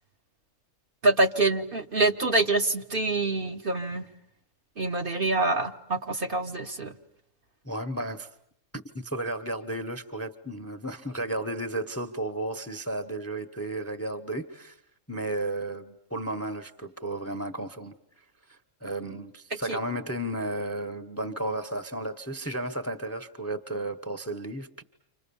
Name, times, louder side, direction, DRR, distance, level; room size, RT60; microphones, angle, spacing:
voice 1, 1.0-4.0 4.8-6.9 19.7-19.8, right 2 dB, 45° right, 1.3 m, -26 dB
voice 2, 7.6-8.3 8.7-14.8 15.1-17.9 18.5-24.8, right 1 dB, 10° left, 0.9 m, -33 dB
30.0 x 26.5 x 7.0 m
omnidirectional pair, 1.4 m